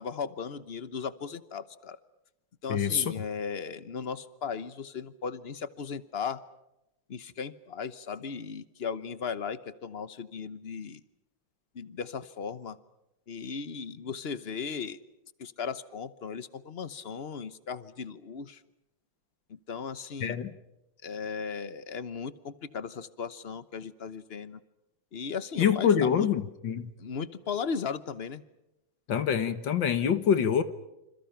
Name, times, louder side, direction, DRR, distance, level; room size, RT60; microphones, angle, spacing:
voice 1, 0.0-2.0 2.6-6.4 7.1-11.0 11.7-12.8 13.3-15.0 15.4-18.6 19.5-20.4 21.0-24.6 25.1-26.3 27.0-28.4, left 6 dB, 40° left, 14 dB, 0.9 m, -37 dB
voice 2, 2.7-3.1 20.2-20.5 25.6-26.9 29.1-30.6, left 8 dB, 65° left, 11 dB, 2.0 m, -25 dB
28.5 x 27.0 x 5.9 m, 0.91 s
omnidirectional pair, 2.3 m